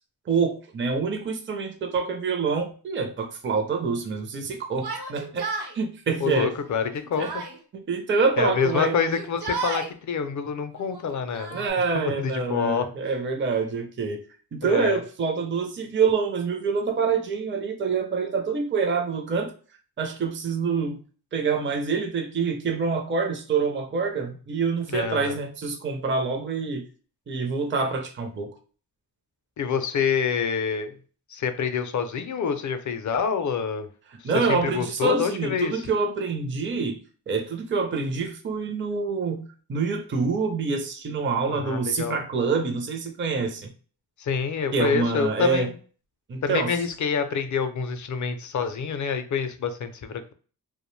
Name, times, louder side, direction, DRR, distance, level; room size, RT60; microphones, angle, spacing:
voice 1, 0.3-6.5 7.2-7.3 7.7-9.1 11.5-14.2 14.5-19.5 20.0-21.0 21.3-26.8 27.3-28.5 34.2-37.0 37.3-43.7 44.7-45.7 46.3-46.7, right 4 dB, 30° right, 4 dB, 0.5 m, -26 dB
Yell, 4.7-5.7 6.6-7.6 8.6-9.9 10.8-11.7, right 4 dB, 70° right, 0.8 m, -34 dB
voice 2, 6.2-7.4 8.4-11.7 11.9-12.9 14.6-15.0 24.9-25.3 29.6-31.0 31.3-33.9 34.2-35.8 41.5-42.2 44.2-45.7 46.4-50.3, left 6 dB, 50° left, 9 dB, 0.5 m, -27 dB
2.5 x 2.1 x 3.1 m, 0.40 s
wide cardioid pair, 85°, 40 cm